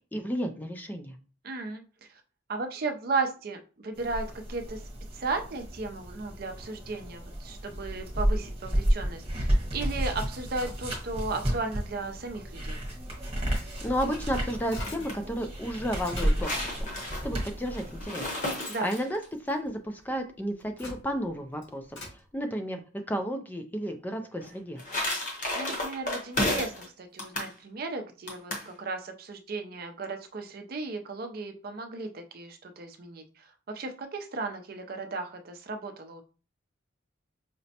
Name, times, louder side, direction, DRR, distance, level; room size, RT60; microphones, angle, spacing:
voice 1, 0.1-1.2 13.8-16.9 17.2-18.3 18.5-24.8, equal, 10° left, 6 dB, 0.3 m, -33 dB
voice 2, 1.4-1.8 2.5-4.8 5.1-12.8 18.7-18.9 25.6-36.2, right 3 dB, 50° right, 6 dB, 0.5 m, -35 dB
sound 1, 3.9-18.1, equal, 30° right, 1.1 m, -32 dB
sound 2, 13.4-15.3 15.7-16.5 17.4-17.5 17.9-20.1 20.5-22.2, left 2 dB, 80° left, 1.7 m, -45 dB
sound 3, 14.6-15.2 16.0-19.3 24.4-26.9 27.2-27.5 28.3-28.7, left 1 dB, 40° left, 0.9 m, -32 dB
5.0 x 2.0 x 2.8 m, 0.35 s
head